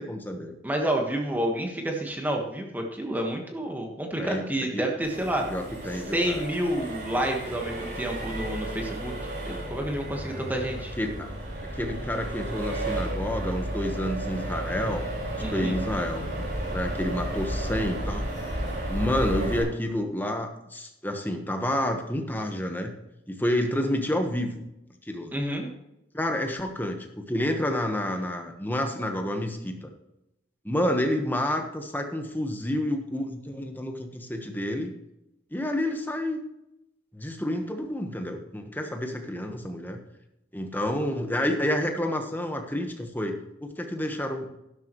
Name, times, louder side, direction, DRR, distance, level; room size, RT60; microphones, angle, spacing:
voice 1, 0.0-0.5 4.2-4.4 4.7-4.8 5.5-6.4 10.3-10.4 11.0-11.3 11.7-15.0 15.3-16.2 16.7-18.3 18.9-22.9 23.3-24.6 25.0-25.4 26.1-29.9 30.6-34.9 35.5-36.4 37.1-40.0 40.5-44.5, left 1 dB, 10° left, 4 dB, 1.2 m, -29 dB
voice 2, 0.6-5.5 6.1-9.1 9.5-10.9 15.4-15.8 25.3-25.7, right 1 dB, 10° right, 1 dB, 1.4 m, -29 dB
Accelerating revving vroom, 5.0-19.6, right 1 dB, 60° right, 4.7 m, -33 dB
11.5 x 11.5 x 3.1 m, 0.88 s
head